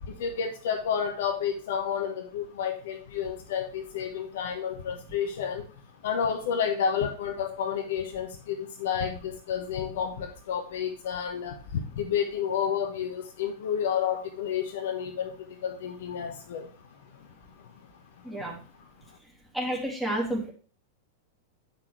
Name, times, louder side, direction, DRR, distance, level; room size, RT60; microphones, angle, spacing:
voice 1, 0.2-5.6 6.0-15.3 15.6-16.7, left 7 dB, 60° left, 4 dB, 1.2 m, -30 dB
voice 2, 18.2-18.6 19.5-20.5, right 1 dB, 5° right, -3 dB, 2.9 m, -30 dB
8.6 x 6.1 x 3.3 m, 0.39 s
figure-of-eight pair, 95°, 0 cm